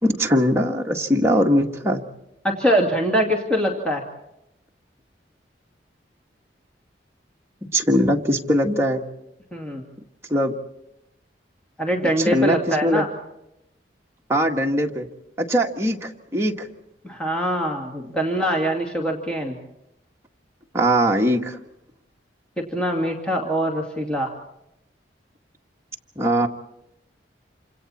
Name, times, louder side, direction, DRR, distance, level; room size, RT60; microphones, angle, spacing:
voice 1, 0.0-2.0 7.6-9.0 10.3-10.5 12.2-13.0 14.3-15.1 15.4-16.7 20.7-21.6 26.1-26.5, equal, 15° right, 0 dB, 1.8 m, -21 dB
voice 2, 2.4-4.0 9.5-9.8 11.8-13.1 17.0-19.6 22.6-24.3, equal, 5° left, 0 dB, 2.5 m, -23 dB
28.5 x 26.5 x 4.3 m, 0.84 s
head